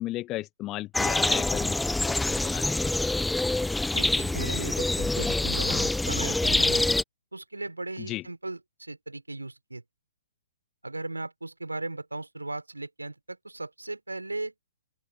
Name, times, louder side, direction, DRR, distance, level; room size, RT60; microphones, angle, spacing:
voice 1, 0.0-2.8 8.0-8.2, left 16 dB, 25° left, 1.2 m, -35 dB
sound 1, 0.9-7.0, left 2 dB, 5° left, 1.0 m, -26 dB
voice 2, 3.9-6.8 7.3-9.8 10.8-14.5, right 2 dB, 85° right, 3.6 m, -37 dB
open air
figure-of-eight pair, 125°, 0 cm